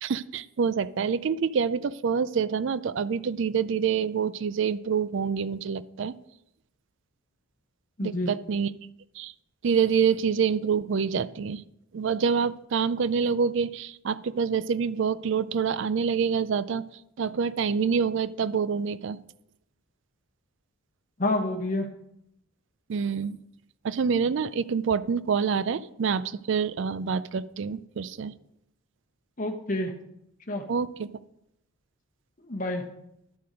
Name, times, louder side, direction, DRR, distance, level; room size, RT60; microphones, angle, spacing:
voice 1, 0.0-6.1 8.0-8.7 9.2-9.3 9.6-11.6 11.9-16.8 17.2-19.2 22.9-23.4 23.8-28.3 30.7-31.1, right 6 dB, 55° right, 17 dB, 0.4 m, -26 dB
voice 2, 8.0-8.3 21.2-21.9 29.4-29.9 30.5-30.6 32.4-32.8, left 2 dB, 35° left, 3 dB, 1.0 m, -28 dB
11.5 x 6.8 x 5.1 m, 0.82 s
head